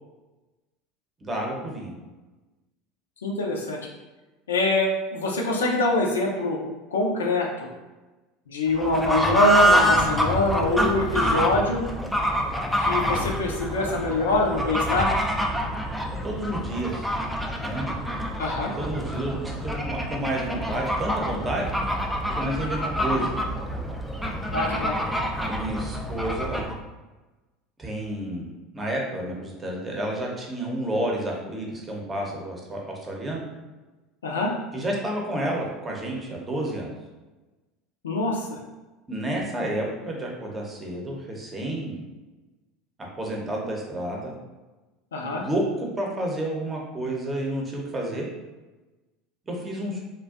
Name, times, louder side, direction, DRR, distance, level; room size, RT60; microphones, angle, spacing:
voice 1, 1.2-1.9 16.2-17.1 17.6-18.0 18.6-21.7 22.3-23.3 25.4-26.6 27.8-33.4 34.7-36.9 39.1-42.0 43.0-44.3 45.2-48.3 49.5-50.0, right 1 dB, 20° right, -1 dB, 0.7 m, -30 dB
voice 2, 3.2-3.8 4.5-6.6 6.9-7.7 8.5-11.8 12.8-15.1 18.4-18.7 24.5-25.0 34.2-34.5 38.0-38.6 45.1-45.4, left 2 dB, 85° left, 0 dB, 0.4 m, -24 dB
Fowl / Bird, 8.7-26.8, equal, ahead, 0.3 m, -26 dB
2.5 x 2.2 x 2.4 m, 1.1 s
hypercardioid pair, 80°, 0 cm